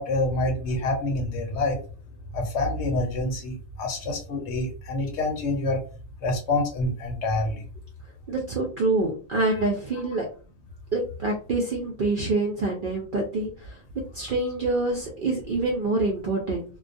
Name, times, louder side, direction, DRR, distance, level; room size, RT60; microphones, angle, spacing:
voice 1, 0.0-1.8 2.3-5.8 6.2-7.6 9.5-9.6, left 2 dB, 65° left, 3 dB, 0.8 m, -27 dB
voice 2, 8.3-10.3 10.9-13.8 14.1-16.6, right 2 dB, 60° right, -2 dB, 0.5 m, -26 dB
2.2 x 2.2 x 2.5 m, 0.38 s
omnidirectional pair, 1.4 m